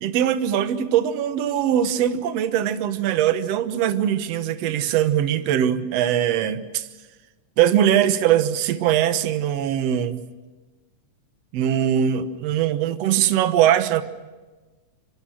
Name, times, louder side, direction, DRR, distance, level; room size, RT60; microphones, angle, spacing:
voice 1, 0.0-6.9 7.6-10.2 11.5-14.0, right 10 dB, 65° right, 11 dB, 2.1 m, -21 dB
26.0 x 25.0 x 6.4 m, 1.2 s
omnidirectional pair, 3.3 m